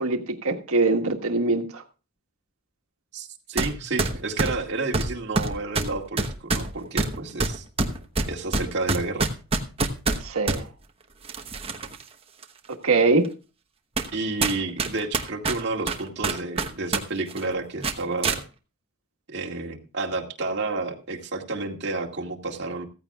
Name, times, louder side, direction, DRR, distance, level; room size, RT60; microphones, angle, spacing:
voice 1, 0.0-1.8 10.2-10.7 12.8-13.3, right 3 dB, 80° right, 1.5 m, -23 dB
voice 2, 3.1-7.6 8.3-9.3 14.1-18.4 19.3-22.9, right 3 dB, 50° right, 2.1 m, -30 dB
sound 1, 3.6-3.7 4.0-10.6 11.2-12.0 12.4-12.5 13.2-13.3 14.0-14.1 14.4-17.0 17.3-17.4 17.8-18.4, right 3 dB, 25° right, 1.0 m, -26 dB
15.5 x 14.5 x 2.4 m
head